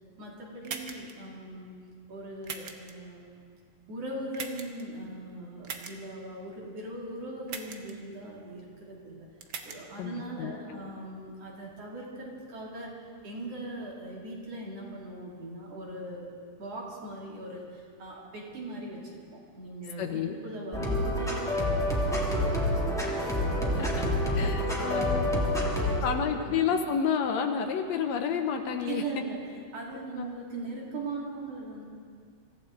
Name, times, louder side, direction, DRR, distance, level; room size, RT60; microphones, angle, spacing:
voice 1, 0.2-1.7 2.1-3.4 3.9-9.3 9.6-16.3 16.6-23.1 23.5-25.4 25.8-26.6 28.8-29.4 29.7-31.9, right 2 dB, 55° right, -4 dB, 3.7 m, -40 dB
sound 1, 0.6-1.1 2.4-2.9 4.3-4.8 5.6-5.9 7.5-7.9 9.4-9.8, right 6 dB, 85° right, 0.9 m, -39 dB
voice 2, 10.0-10.8 20.0-20.4 23.7-24.1 24.4-25.2 26.0-29.0 30.2-30.3, left 7 dB, 75° left, 5 dB, 2.0 m, -30 dB
sound 2, 20.7-26.0, left 1 dB, ahead, 1.9 m, -27 dB
24.5 x 15.0 x 3.8 m, 2.1 s
omnidirectional pair, 3.4 m